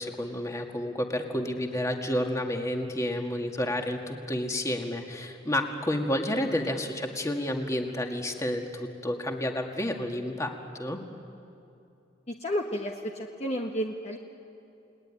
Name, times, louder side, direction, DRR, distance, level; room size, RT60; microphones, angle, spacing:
voice 1, 0.0-11.0, left 1 dB, 15° left, 3 dB, 2.0 m, -30 dB
voice 2, 12.3-12.9 13.4-14.2, equal, 35° left, 1 dB, 1.4 m, -31 dB
29.5 x 20.0 x 9.9 m, 2.7 s
head